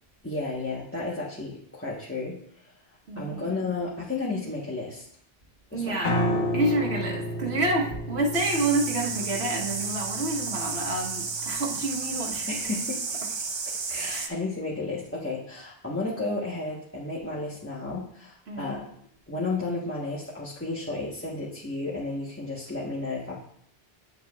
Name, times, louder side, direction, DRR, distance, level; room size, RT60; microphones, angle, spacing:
voice 1, 0.2-2.6 3.1-5.0 5.7-6.0 6.3-6.5 12.5-13.0 13.3-13.4 13.9-18.8 19.3-23.4, left 3 dB, 15° left, -8 dB, 1.0 m, -32 dB
voice 2, 3.1-3.5 5.7-6.1 6.5-12.6 14.1-14.3 18.5-18.9, right 2 dB, 85° right, -1 dB, 1.5 m, -28 dB
Piano, 6.0-12.2, equal, 75° left, 1.3 m, -32 dB
sound 1, 8.3-14.3, right 4 dB, 40° right, 0.4 m, -32 dB
8.7 x 7.1 x 2.4 m, 0.65 s
omnidirectional pair, 1.0 m